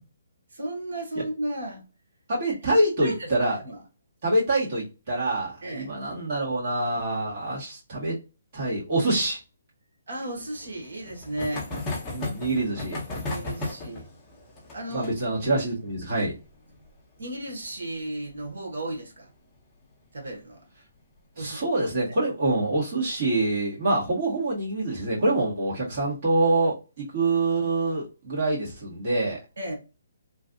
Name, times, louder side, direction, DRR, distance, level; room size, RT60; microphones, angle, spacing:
voice 1, 0.5-1.8 2.7-3.8 5.6-5.9 10.1-11.7 13.2-14.1 14.7-15.1 17.2-19.3 20.1-20.6 21.4-21.6 29.6-29.7, right 1 dB, 75° right, 1.4 m, -34 dB
voice 2, 2.3-3.6 4.2-8.2 8.5-9.4 12.1-13.0 14.9-16.3 21.4-29.4, right 2 dB, 45° right, 1.7 m, -25 dB
sound 1, 10.3-19.6 19.8-19.9 20.2-20.3 20.5-20.6 22.0-22.3 23.0-23.4, left 2 dB, 15° left, 1.0 m, -37 dB
3.2 x 2.4 x 2.6 m
hypercardioid pair, 155°, 0 cm